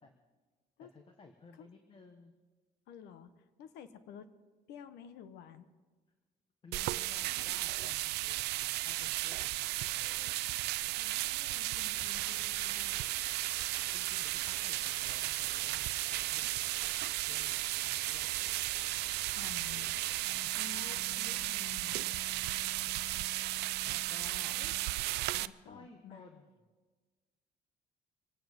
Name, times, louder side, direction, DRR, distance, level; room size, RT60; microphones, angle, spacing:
voice 1, 0.8-2.3 6.6-10.4 11.1-11.6 12.3-12.7 13.9-21.1 22.3-22.8 23.8-24.8 25.3-26.4, left 4 dB, 30° left, 5 dB, 1.3 m, -57 dB
voice 2, 2.9-4.3 4.7-5.7 10.9-13.0 19.3-19.9 20.5-22.0 24.6-24.7 25.4-26.2, left 8 dB, 85° left, 12 dB, 1.1 m, -51 dB
sound 1, 6.7-25.5, right 18 dB, 80° right, 0.4 m, -35 dB
sound 2, 11.7-20.2, right 3 dB, 15° right, 2.4 m, -51 dB
Wind instrument woodwind instrument, 20.2-25.0, left 5 dB, 65° left, 1.3 m, -54 dB
25.0 x 9.2 x 5.3 m, 1.4 s
cardioid pair, 110°, 17 cm